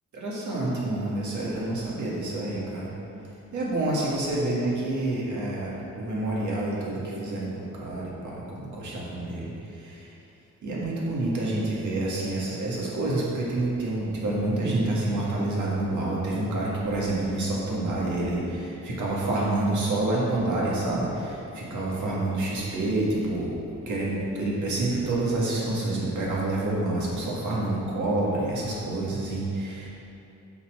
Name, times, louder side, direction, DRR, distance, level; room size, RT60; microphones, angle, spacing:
voice 1, 0.1-2.9 3.5-7.5 7.7-10.1 10.6-23.6 23.9-29.9, right 2 dB, 70° right, -5 dB, 1.9 m, -28 dB
8.3 x 4.3 x 6.3 m, 2.8 s
wide cardioid pair, 165°, 31 cm